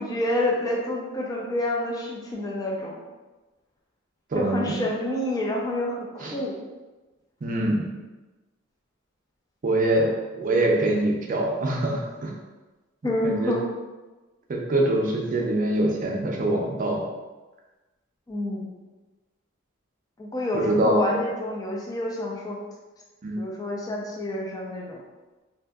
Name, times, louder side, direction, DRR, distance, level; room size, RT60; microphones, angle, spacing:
voice 1, 0.0-2.9 4.3-6.5 13.0-13.6 18.3-18.7 20.2-22.6 23.4-25.0, left 1 dB, 20° left, -2 dB, 0.4 m, -28 dB
voice 2, 4.3-4.7 6.2-6.4 7.4-7.8 9.6-12.3 13.2-13.5 14.5-17.0 20.5-21.2 23.2-23.4, right 1 dB, 40° right, -1 dB, 0.4 m, -24 dB
2.7 x 2.5 x 2.2 m, 1.2 s
head